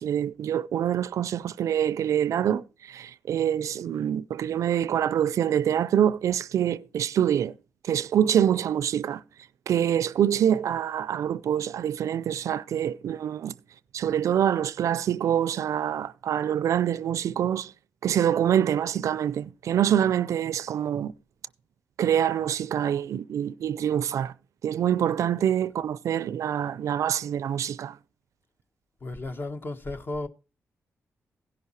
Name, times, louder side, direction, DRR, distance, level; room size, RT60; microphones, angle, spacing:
voice 1, 0.0-7.5 7.8-9.2 9.7-13.5 13.9-17.7 18.0-21.1 22.0-24.3 24.6-28.0, right 9 dB, 80° right, 0.4 m, -25 dB
voice 2, 29.0-30.3, left 2 dB, 40° left, 1.2 m, -34 dB
16.0 x 5.7 x 4.1 m
cardioid pair, 85°, 5 cm